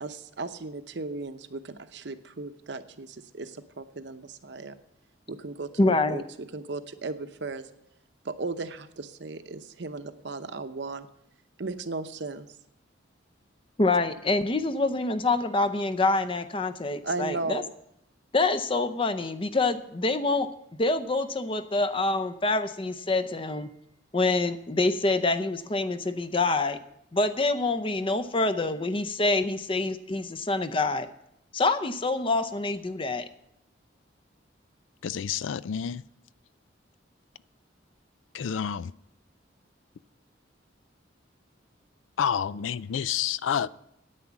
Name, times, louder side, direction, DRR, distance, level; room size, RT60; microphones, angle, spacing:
voice 1, 0.0-4.7 5.3-6.2 6.5-7.7 8.2-11.1 11.6-12.5 17.0-17.7, right 3 dB, 65° right, 0.8 m, -36 dB
voice 2, 5.8-6.2 13.8-17.6 18.3-20.5 20.8-23.7 24.1-26.8 27.1-31.1 31.5-33.3, left 2 dB, 30° left, 0.6 m, -26 dB
voice 3, 35.0-36.0 38.3-38.9 42.2-43.7, left 8 dB, 85° left, 0.4 m, -29 dB
9.8 x 9.0 x 7.1 m
head